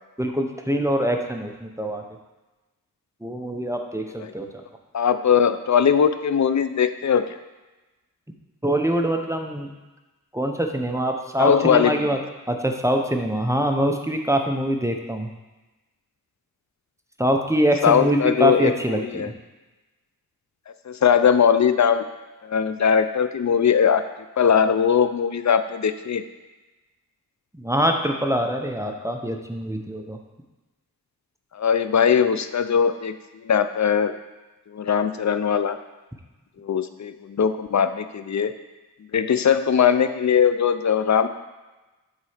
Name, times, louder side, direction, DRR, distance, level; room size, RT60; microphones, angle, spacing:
voice 1, 0.2-2.0 3.2-4.5 8.6-9.7 10.3-12.2 12.5-15.3 17.2-19.3 27.5-30.2, right 1 dB, 10° right, 3 dB, 0.8 m, -24 dB
voice 2, 4.9-7.2 11.4-12.1 17.8-19.3 20.9-22.0 22.4-24.0 24.4-26.2 31.5-34.1 34.7-35.8 36.6-38.5 39.1-41.3, left 7 dB, 55° left, 10 dB, 0.5 m, -20 dB
7.4 x 4.1 x 5.0 m, 1.1 s
wide cardioid pair, 50°, 35 cm